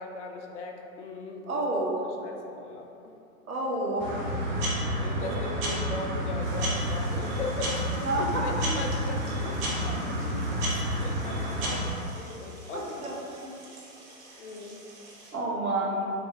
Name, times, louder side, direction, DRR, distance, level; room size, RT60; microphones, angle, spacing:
voice 1, 0.0-1.7 2.0-3.1 4.8-7.8 8.2-11.9 12.1-13.2 14.4-14.8, left 3 dB, 60° left, 2 dB, 0.5 m, -39 dB
voice 2, 1.5-2.0 3.5-4.1 5.2-5.3 8.0-8.4 11.6-11.8 12.7-13.2 13.4-13.6 15.3-16.1, right 2 dB, 90° right, -3 dB, 0.8 m, -29 dB
sound 1, 4.0-11.8, equal, 30° right, 0.6 m, -30 dB
sound 2, 6.4-15.3, right 2 dB, 50° right, 1.0 m, -51 dB
3.4 x 2.5 x 3.4 m, 2.7 s
figure-of-eight pair, 110°, 42 cm